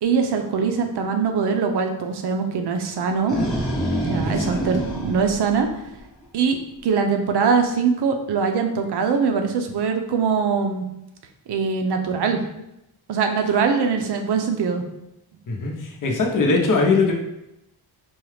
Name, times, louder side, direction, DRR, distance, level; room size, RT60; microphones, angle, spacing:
voice 1, 0.0-3.4 4.0-5.7 6.3-10.8 11.5-12.4 13.1-14.8, right 5 dB, 75° right, 4 dB, 0.6 m, -22 dB
sound 1, 3.0-6.2, right 1 dB, ahead, 1.0 m, -27 dB
voice 2, 4.2-4.6 15.5-17.1, left 3 dB, 50° left, 1 dB, 0.8 m, -21 dB
4.5 x 2.3 x 3.3 m, 0.85 s
wide cardioid pair, 130°, 41 cm